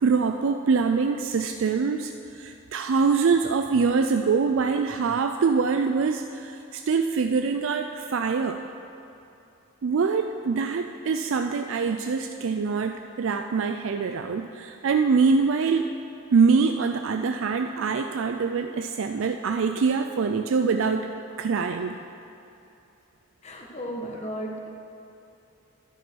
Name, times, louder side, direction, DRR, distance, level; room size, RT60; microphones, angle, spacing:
voice 1, 0.0-8.6 9.8-15.9 16.3-21.1 21.4-22.0, right 5 dB, 65° right, 6 dB, 0.4 m, -24 dB
voice 2, 23.4-24.7, equal, 30° left, 0 dB, 1.4 m, -34 dB
12.0 x 10.0 x 4.6 m, 2.8 s
head